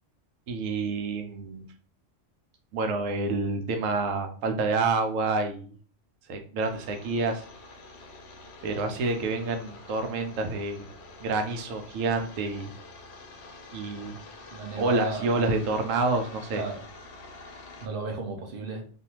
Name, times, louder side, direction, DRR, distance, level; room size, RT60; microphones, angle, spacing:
voice 1, 0.5-1.6 2.7-5.7 6.3-7.4 8.6-10.9 11.2-12.7 13.7-14.2 14.8-16.6, right 3 dB, 85° right, 6 dB, 1.0 m, -28 dB
sound 1, 6.6-17.9, left 2 dB, 65° left, 0.7 m, -47 dB
voice 2, 14.5-15.4 16.5-16.8 17.8-18.8, right 3 dB, 55° right, 3 dB, 0.7 m, -34 dB
2.6 x 2.4 x 2.8 m, 0.43 s
omnidirectional pair, 1.3 m